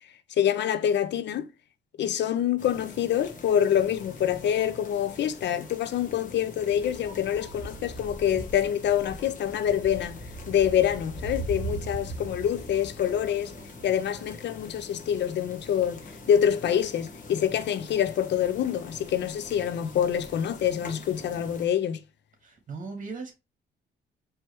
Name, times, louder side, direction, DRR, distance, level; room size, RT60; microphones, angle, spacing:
voice 1, 0.4-1.5 2.0-10.2 10.5-13.5 13.8-16.0 16.3-22.0, left 9 dB, 60° left, 0.5 m, -26 dB
sound 1, 2.6-21.7, equal, 40° left, 1.2 m, -41 dB
voice 2, 22.4-23.3, right 4 dB, 40° right, 2.3 m, -38 dB
4.6 x 3.2 x 2.9 m
cardioid pair, 90°, 20 cm